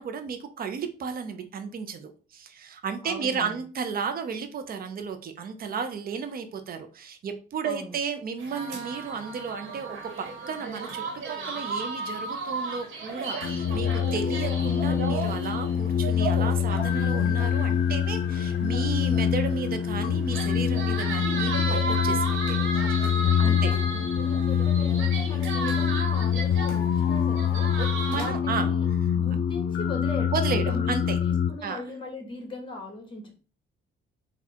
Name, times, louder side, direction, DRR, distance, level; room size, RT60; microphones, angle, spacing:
voice 1, 0.0-22.6 23.4-24.0 27.8-28.7 30.3-31.2 31.6-31.8, right 6 dB, 50° right, 8 dB, 0.7 m, -33 dB
voice 2, 3.0-3.5 7.6-7.9 22.8-23.9 24.2-27.7 28.1-28.9 29.1-33.3, left 2 dB, 25° left, 2 dB, 1.6 m, -39 dB
sound 1, 8.4-28.3, right 3 dB, 85° right, 1.4 m, -35 dB
sound 2, 13.4-31.5, left 8 dB, 70° left, 0.5 m, -25 dB
3.6 x 2.4 x 4.3 m, 0.36 s
cardioid pair, 90°, 20 cm